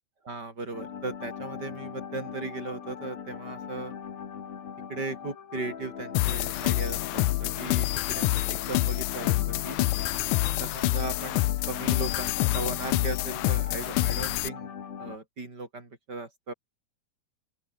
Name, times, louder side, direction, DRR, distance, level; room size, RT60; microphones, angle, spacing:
voice 1, 0.2-3.9 4.9-9.8 10.6-14.7 15.0-16.5, right 3 dB, 30° right, 4.9 m, -37 dB
sound 1, 0.7-15.2, left 7 dB, 60° left, 3.7 m, -40 dB
sound 2, 6.1-14.5, left 18 dB, 90° left, 2.2 m, -27 dB
open air
omnidirectional pair, 3.5 m